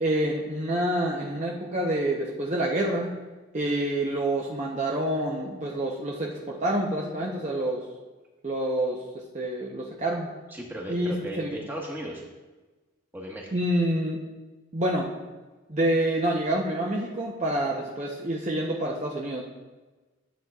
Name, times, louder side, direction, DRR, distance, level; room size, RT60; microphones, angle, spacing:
voice 1, 0.0-3.1 3.5-7.8 8.4-9.0 9.3-10.3 10.9-11.5 13.5-14.2 14.7-15.1 15.7-19.4, right 1 dB, 35° right, -2 dB, 0.7 m, -27 dB
voice 2, 10.5-12.2 13.1-13.5 17.7-17.8, equal, 10° right, -2 dB, 1.3 m, -36 dB
12.5 x 7.5 x 2.3 m, 1.2 s
head